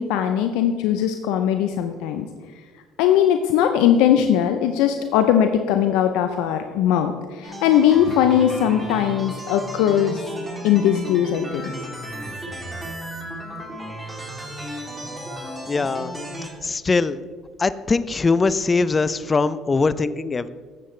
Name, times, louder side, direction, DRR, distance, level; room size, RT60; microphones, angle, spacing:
voice 1, 0.0-2.3 3.0-7.1 7.4-10.2 10.6-11.6, left 9 dB, 80° left, 7 dB, 0.5 m, -19 dB
sound 1, 7.4-16.5, equal, 15° right, 2.8 m, -34 dB
voice 2, 15.7-16.1 16.6-17.2 17.6-20.5, left 4 dB, 30° left, 15 dB, 0.5 m, -21 dB
15.0 x 7.6 x 3.2 m, 1.5 s
supercardioid pair, 80°, 0 cm